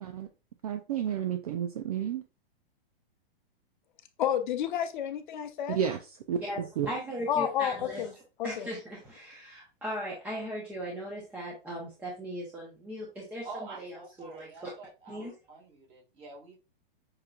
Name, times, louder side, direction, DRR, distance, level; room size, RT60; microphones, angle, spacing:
voice 1, 0.6-2.2 5.7-6.0 6.3-6.9, right 9 dB, 40° right, 7 dB, 0.4 m, -31 dB
voice 2, 4.2-5.8 7.3-8.1 8.4-8.7, left 9 dB, 50° left, 7 dB, 0.7 m, -30 dB
voice 3, 6.4-8.1 8.4-13.9 14.2-14.7 15.1-15.3, equal, 5° right, -4 dB, 0.7 m, -38 dB
voice 4, 13.4-16.6, right 4 dB, 20° right, -1 dB, 1.7 m, -47 dB
7.4 x 3.0 x 2.4 m, 0.30 s
hypercardioid pair, 160°, 30 cm